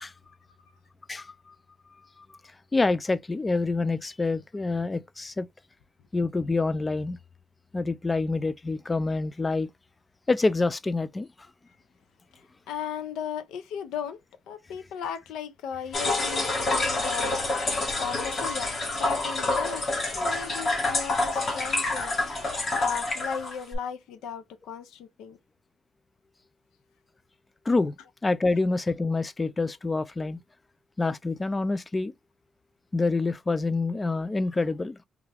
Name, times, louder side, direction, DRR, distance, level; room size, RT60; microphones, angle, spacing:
voice 1, 1.1-1.6 2.2-2.4 2.7-5.5 6.1-7.2 7.7-9.7 10.3-11.3 27.7-28.0 28.2-30.4 31.0-32.1 32.9-35.0, left 3 dB, 25° left, 0.3 m, -27 dB
voice 2, 12.7-14.2 14.5-17.4 18.0-18.7 19.0-25.4, left 7 dB, 90° left, 0.6 m, -36 dB
sound 1, 15.9-23.8, left 2 dB, 50° left, 1.3 m, -27 dB
3.5 x 2.3 x 3.3 m
cardioid pair, 90°, 0 cm